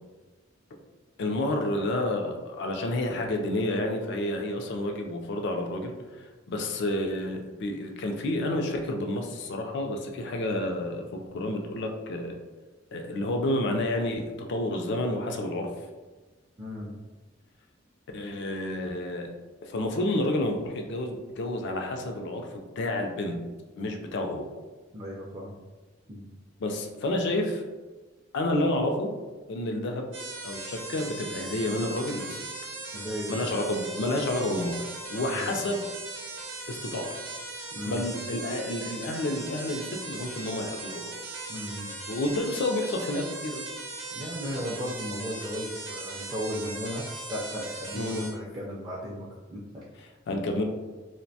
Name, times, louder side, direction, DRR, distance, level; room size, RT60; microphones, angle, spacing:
voice 1, 1.2-5.9 6.5-12.3 12.9-15.7 18.1-19.3 19.7-22.5 22.8-23.4 23.8-24.5 26.6-27.6 28.3-29.1 29.5-30.1 30.4-32.4 33.3-34.8 35.1-35.8 36.7-37.0 37.9-41.1 42.1-43.7 47.9-48.3 50.3-50.6, left 1 dB, 65° left, 3 dB, 0.4 m, -29 dB
voice 2, 16.6-16.9 24.9-25.5 26.1-26.3 32.9-33.5 35.2-35.6 37.7-38.1 41.5-41.9 44.1-49.8, equal, 20° right, -5 dB, 0.4 m, -36 dB
sound 1, 30.1-48.3, right 3 dB, 70° right, 0.6 m, -39 dB
2.5 x 2.1 x 2.6 m, 1.2 s
head